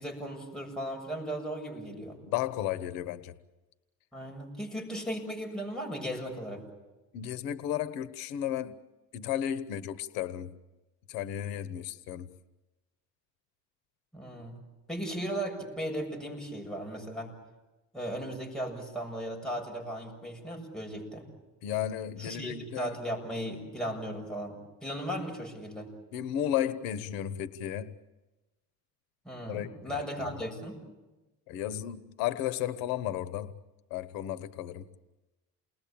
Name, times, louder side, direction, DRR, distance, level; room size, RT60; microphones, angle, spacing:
voice 1, 0.0-2.2 4.1-6.6 14.1-14.6 14.9-17.3 17.9-21.3 22.2-25.9 29.2-30.8, equal, ahead, 0 dB, 7.2 m, -36 dB
voice 2, 2.3-3.4 7.1-8.8 9.1-10.5 11.1-12.3 21.6-22.9 26.1-27.9 29.5-30.4 31.5-33.6 33.9-34.9, left 11 dB, 80° left, 13 dB, 1.2 m, -34 dB
29.0 x 20.5 x 8.7 m, 1.1 s
cardioid pair, 125°, 34 cm